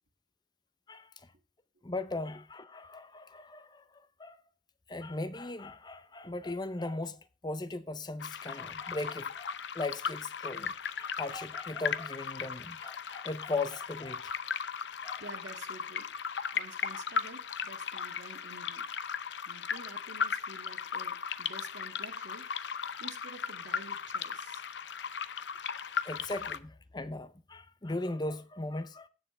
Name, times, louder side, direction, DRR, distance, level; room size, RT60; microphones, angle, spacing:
voice 1, 1.8-4.4 4.9-14.2 15.0-15.2 26.0-29.1, left 2 dB, 25° left, 0.7 m, -38 dB
sound 1, 8.2-26.6, left 7 dB, 80° left, 0.7 m, -37 dB
voice 2, 15.2-16.1 16.5-18.9 19.4-22.5 23.0-24.6, right 3 dB, 90° right, 2.0 m, -50 dB
18.0 x 6.8 x 3.3 m
head